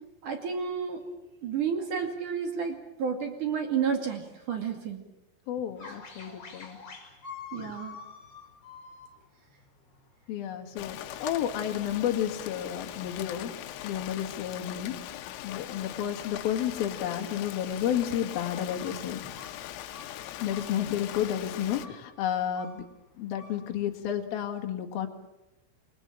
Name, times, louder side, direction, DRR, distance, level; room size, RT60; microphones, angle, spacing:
voice 1, 0.2-5.0 5.8-6.0 7.5-8.0, right 6 dB, 45° right, 5 dB, 3.2 m, -31 dB
voice 2, 5.5-6.8 7.6-7.7 10.3-13.5 13.8-14.9 15.4-19.3 20.4-22.9 23.2-25.1, left 10 dB, 55° left, 3 dB, 3.6 m, -31 dB
sound 1, 5.8-24.3, left 5 dB, 30° left, 6.1 m, -50 dB
Rain, 10.8-21.9, left 13 dB, 80° left, 3.8 m, -41 dB
28.5 x 22.5 x 7.5 m, 0.92 s
omnidirectional pair, 5.9 m